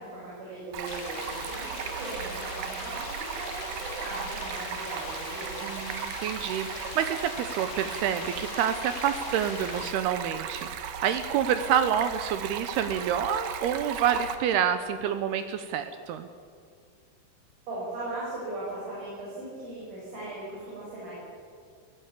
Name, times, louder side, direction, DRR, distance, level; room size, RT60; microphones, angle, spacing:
voice 1, 0.0-5.6 17.7-21.1, right 2 dB, 50° right, -7 dB, 7.6 m, -38 dB
Stream, 0.7-14.4, right 8 dB, 65° right, 2.7 m, -36 dB
sound 1, 0.9-9.9, left 6 dB, 70° left, 3.9 m, -41 dB
voice 2, 5.6-16.3, right 9 dB, 85° right, 10 dB, 2.3 m, -28 dB
21.0 x 17.5 x 8.4 m, 2.2 s
omnidirectional pair, 5.6 m